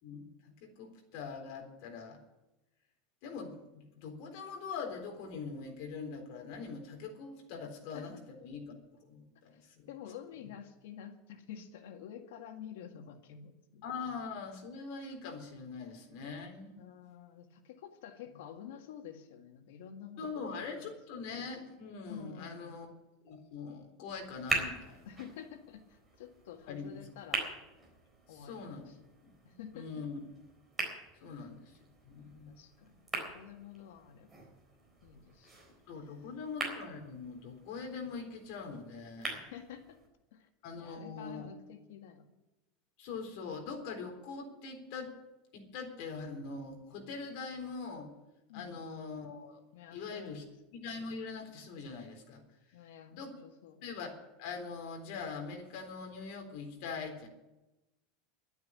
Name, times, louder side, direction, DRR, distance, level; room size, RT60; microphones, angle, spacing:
voice 1, 0.0-2.2 3.2-8.7 9.0-9.9 13.8-16.8 20.2-22.9 23.2-25.1 26.7-27.0 28.3-28.9 29.2-30.2 31.2-31.7 32.0-32.6 35.9-39.4 40.6-41.5 43.0-45.1 45.5-48.1 48.5-49.6 49.9-50.5 50.7-52.4 53.1-53.3 53.8-57.3, left 5 dB, 55° left, 3 dB, 3.8 m, -43 dB
voice 2, 9.9-13.8 16.8-21.0 22.0-22.8 25.1-27.5 28.3-29.1 29.4-29.9 31.3-31.5 32.5-33.1 33.3-34.5 35.0-35.5 35.9-36.3 39.4-40.0 40.3-40.5 40.8-42.3 48.5-48.9 49.7-50.5 52.7-53.9, left 8 dB, 85° left, 5 dB, 1.9 m, -49 dB
sound 1, 24.1-40.1, right 3 dB, 10° right, 4.0 m, -43 dB
12.0 x 9.4 x 10.0 m, 0.99 s
supercardioid pair, 165°, 0 cm